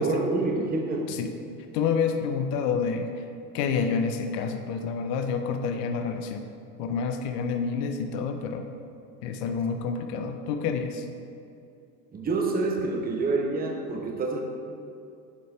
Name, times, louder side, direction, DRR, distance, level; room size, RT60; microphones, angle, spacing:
voice 1, 0.0-1.2 12.1-14.4, right 3 dB, 20° right, 2 dB, 0.8 m, -27 dB
voice 2, 1.7-3.2 3.5-6.4 6.8-8.7 9.2-11.1, left 5 dB, 70° left, 6 dB, 0.8 m, -28 dB
10.0 x 4.4 x 3.3 m, 2.5 s
supercardioid pair, 105°, 49 cm